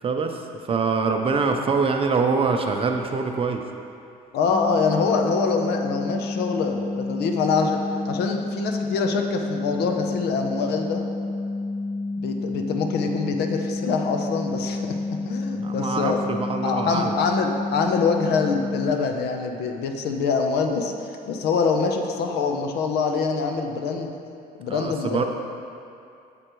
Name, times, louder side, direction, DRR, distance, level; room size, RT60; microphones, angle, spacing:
voice 1, 0.0-3.6 15.5-17.2 24.7-25.2, right 4 dB, 35° right, 4 dB, 0.6 m, -24 dB
voice 2, 4.3-7.8 8.0-11.1 12.1-16.2 16.6-24.1 24.6-25.2, left 5 dB, 75° left, 4 dB, 0.8 m, -25 dB
sound 1, 4.4-18.9, left 2 dB, 30° left, 1.9 m, -30 dB
8.0 x 7.7 x 3.1 m, 2.5 s
cardioid pair, 110°, 17 cm